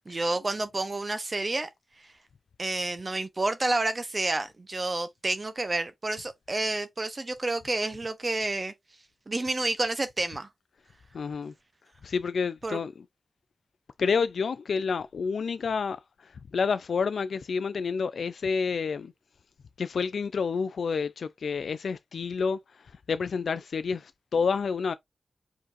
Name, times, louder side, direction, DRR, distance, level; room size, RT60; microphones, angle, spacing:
voice 1, 0.1-1.7 2.6-8.7 9.3-10.5 12.6-12.8, right 2 dB, 30° right, 0.7 m, -29 dB
voice 2, 11.1-11.5 12.0-13.0 14.0-19.1 19.8-24.9, left 5 dB, 80° left, 0.3 m, -29 dB
5.1 x 3.8 x 2.5 m
wide cardioid pair, 110°, 0 cm